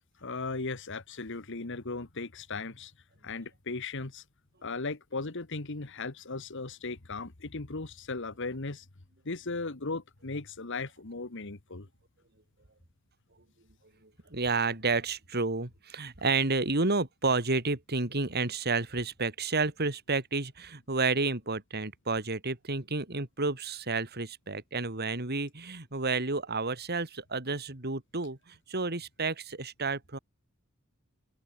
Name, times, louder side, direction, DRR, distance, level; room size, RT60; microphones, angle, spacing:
voice 1, 0.2-2.9 3.2-4.2 4.6-8.9 9.3-11.9, left 3 dB, 60° left, 1.6 m, -37 dB
voice 2, 14.3-30.2, right 3 dB, 50° right, 2.9 m, -30 dB
open air
head